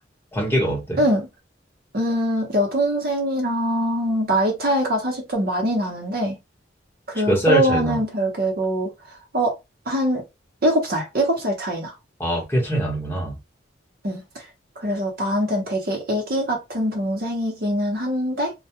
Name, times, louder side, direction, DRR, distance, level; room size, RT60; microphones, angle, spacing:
voice 1, 0.3-1.0 7.3-8.0 12.2-13.4, right 1 dB, 10° left, 1.0 m, -22 dB
voice 2, 1.0-1.3 1.9-6.4 7.1-9.6 9.9-10.2 10.6-12.0 14.0-14.5 14.8-18.5, equal, 50° right, 0.8 m, -23 dB
2.2 x 2.2 x 2.8 m
head